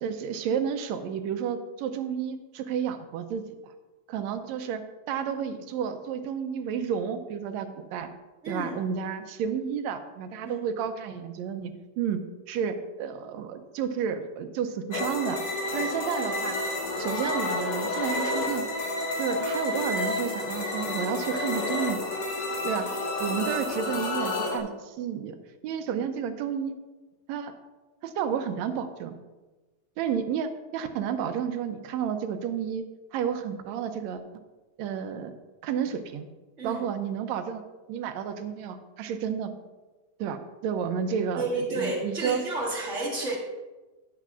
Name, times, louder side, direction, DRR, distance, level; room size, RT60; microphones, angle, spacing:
voice 1, 0.0-3.7 4.1-4.8 5.1-8.1 8.5-15.4 15.7-16.6 17.0-18.7 19.2-22.0 22.6-22.9 23.2-25.4 25.6-26.8 27.3-27.5 28.0-29.1 30.0-32.8 33.1-34.2 34.8-35.3 35.6-36.3 36.6-37.6 37.9-39.5 40.2-42.4, right 7 dB, 80° right, 8 dB, 1.7 m, -31 dB
voice 2, 8.4-8.8 10.4-10.8 15.7-16.0 36.6-36.8 41.4-43.4, right 2 dB, 35° right, -3 dB, 1.3 m, -31 dB
sound 1, 14.9-24.6, left 2 dB, 65° left, 2.1 m, -30 dB
13.5 x 9.8 x 2.4 m, 1.2 s
omnidirectional pair, 3.5 m